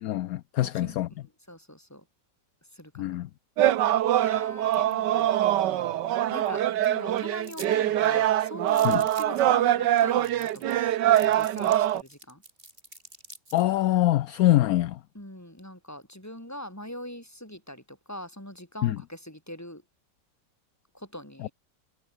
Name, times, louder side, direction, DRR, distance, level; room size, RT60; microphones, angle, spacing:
voice 1, 0.0-1.1 3.0-3.3 8.8-9.0 13.5-15.0 18.8-19.0 21.4-21.5, left 14 dB, 70° left, 0.9 m, -24 dB
voice 2, 0.6-1.0 1.5-2.0 2.7-3.2 4.2-5.4 6.3-10.9 11.2-12.4 15.1-19.8 20.9-21.5, equal, 10° left, 6.1 m, -41 dB
sound 1, 3.6-12.0, right 12 dB, 75° right, 1.5 m, -24 dB
sound 2, 7.4-7.7 8.0-8.1 8.7-9.4 10.0-10.1 10.2-10.8 11.2-13.6, right 1 dB, 30° right, 6.7 m, -46 dB
omnidirectional pair, 1.9 m